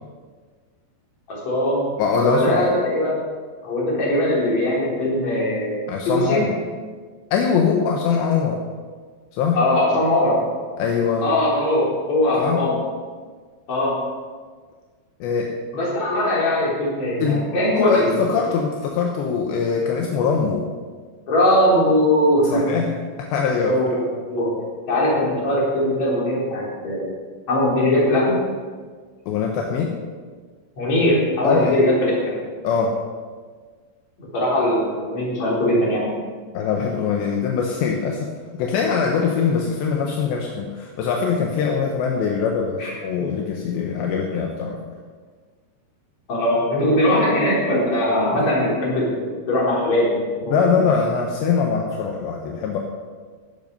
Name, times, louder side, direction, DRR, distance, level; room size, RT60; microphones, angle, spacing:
voice 1, 1.3-1.9 2.2-3.2 3.6-6.4 9.5-10.5 11.2-12.8 13.7-14.0 15.7-18.1 21.3-22.8 23.7-24.0 24.3-27.1 27.5-28.4 30.8-32.3 34.3-36.2 42.8-42.9 46.3-50.9, left 1 dB, 40° left, -5 dB, 5.1 m, -20 dB
voice 2, 2.0-2.7 5.9-6.5 7.3-8.6 9.3-9.6 10.8-11.3 12.4-12.7 15.2-15.5 17.2-20.6 22.5-22.9 23.2-23.8 29.3-30.0 31.4-31.8 32.6-33.0 36.6-44.8 48.3-48.5 50.5-52.8, left 6 dB, 80° left, 0 dB, 3.3 m, -22 dB
15.5 x 11.0 x 5.5 m, 1.5 s
omnidirectional pair, 5.1 m